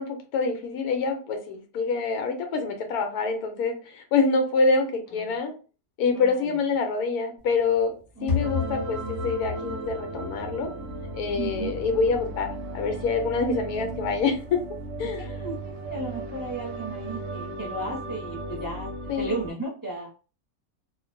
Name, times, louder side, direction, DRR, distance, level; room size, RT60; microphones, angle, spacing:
voice 1, 0.0-5.5 6.0-7.9 8.2-10.7 11.1-14.6 15.0-15.3 19.1-19.4, left 4 dB, 90° left, 5 dB, 1.1 m, -26 dB
voice 2, 6.1-6.6 8.2-8.5 11.4-11.7 15.2-20.1, right 2 dB, 20° right, -5 dB, 0.6 m, -35 dB
sound 1, 7.4-18.7, left 5 dB, 30° left, 0.4 m, -38 dB
sound 2, 8.4-19.5, right 2 dB, 60° right, 0.8 m, -36 dB
2.5 x 2.1 x 2.5 m, 0.36 s
omnidirectional pair, 1.6 m